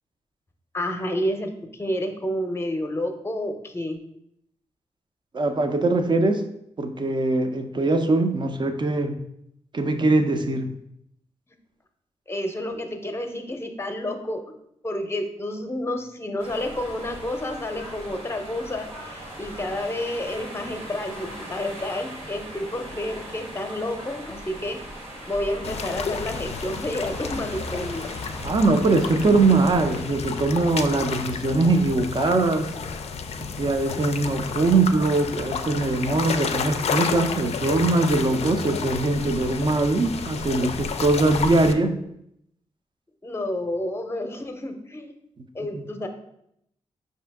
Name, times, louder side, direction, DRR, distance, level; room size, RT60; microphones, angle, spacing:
voice 1, 0.7-4.0 12.3-14.4 14.8-24.8 25.3-28.1 43.2-45.1 45.5-46.1, left 1 dB, 20° left, 6 dB, 0.7 m, -30 dB
voice 2, 5.3-6.4 6.8-9.2 9.7-10.7 28.4-32.7 33.4-42.0, right 2 dB, 40° right, 7 dB, 0.6 m, -22 dB
sound 1, 16.4-30.0, right 1 dB, 75° right, 1.6 m, -39 dB
sound 2, 25.6-41.7, left 5 dB, 60° left, 0.4 m, -31 dB
5.0 x 2.7 x 3.4 m, 0.76 s
cardioid pair, 55°, 12 cm